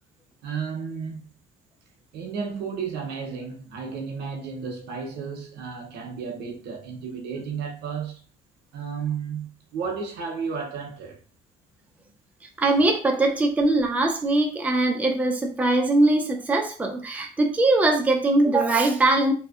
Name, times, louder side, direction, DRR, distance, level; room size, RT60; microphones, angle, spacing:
voice 1, 0.4-1.2 2.1-8.2 8.7-11.2, right 6 dB, 75° right, 0.7 m, -33 dB
voice 2, 12.6-19.3, right 2 dB, 10° right, 0.4 m, -21 dB
2.6 x 2.1 x 2.3 m
cardioid pair, 110°, 17 cm